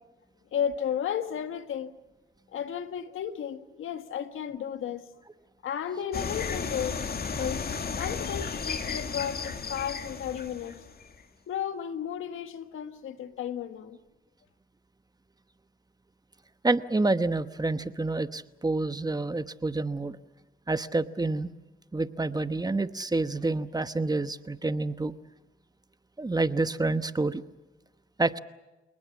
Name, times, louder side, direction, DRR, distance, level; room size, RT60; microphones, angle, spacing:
voice 1, 0.5-1.9 2.5-5.0 5.6-7.0 7.4-10.8 11.5-14.0, left 9 dB, 80° left, 1.6 m, -33 dB
sound 1, 6.1-11.2, left 5 dB, 50° left, 2.2 m, -34 dB
voice 2, 16.6-20.2 20.7-21.5 21.9-25.1 26.2-27.4 28.2-28.4, right 2 dB, 20° right, 1.1 m, -28 dB
28.5 x 19.5 x 7.3 m
cardioid pair, 70°, 21 cm